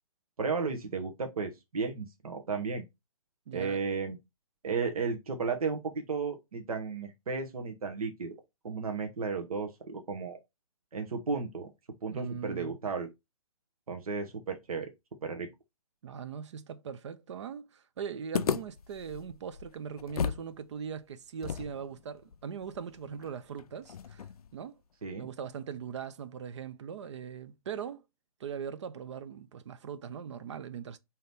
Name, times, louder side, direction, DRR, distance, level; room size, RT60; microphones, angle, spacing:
voice 1, 0.4-2.8 3.5-4.2 4.6-8.4 8.6-10.4 10.9-11.7 12.0-13.1 13.9-14.9 15.2-15.5 25.0-25.3, right 5 dB, 75° right, 0.9 m, -34 dB
voice 2, 3.5-3.8 12.1-12.8 16.0-24.3 24.5-24.8 25.2-28.0 28.4-31.0, right 7 dB, 50° right, 0.5 m, -40 dB
sound 1, 18.3-20.5 20.8-20.9 21.4-24.5, left 7 dB, 80° left, 0.4 m, -36 dB
3.8 x 2.8 x 3.3 m
hypercardioid pair, 140°, 19 cm